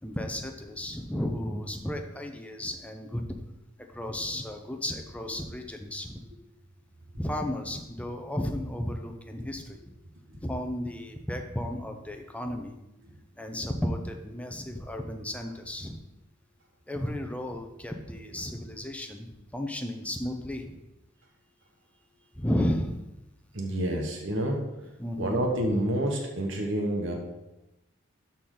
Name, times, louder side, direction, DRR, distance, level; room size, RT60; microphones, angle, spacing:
voice 1, 0.0-3.2 3.8-6.3 7.2-9.8 10.4-12.8 13.4-16.0 16.9-20.8 22.4-23.0 25.0-25.4, left 1 dB, 5° left, 4 dB, 0.7 m, -33 dB
voice 2, 23.5-24.6 25.2-27.1, right 1 dB, 65° right, 1 dB, 1.2 m, -28 dB
12.5 x 4.3 x 3.9 m, 0.96 s
head